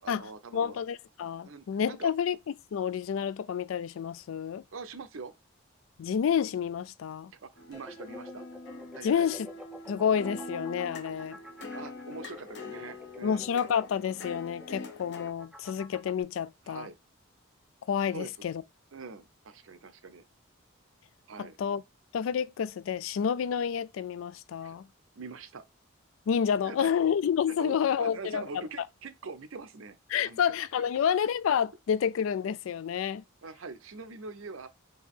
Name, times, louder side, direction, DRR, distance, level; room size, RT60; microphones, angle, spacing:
voice 1, 0.0-0.8 1.4-2.1 4.7-5.3 7.4-8.4 8.9-9.3 11.7-13.5 16.7-17.0 18.1-18.3 18.9-20.2 21.3-21.6 24.6-24.8 25.2-25.6 26.6-26.9 27.5-30.0 30.2-30.5 33.4-34.7, right 4 dB, 85° right, 0.7 m, -43 dB
voice 2, 0.5-2.4 2.7-4.6 6.0-7.3 9.0-9.5 9.9-11.4 13.2-16.9 17.9-18.6 21.4-21.8 22.1-24.9 26.3-28.9 30.1-33.2, left 7 dB, 80° left, 0.3 m, -29 dB
sound 1, 7.6-15.3, left 2 dB, 60° left, 0.9 m, -44 dB
sound 2, 7.7-16.2, left 1 dB, 5° right, 0.4 m, -49 dB
4.5 x 2.8 x 3.6 m
head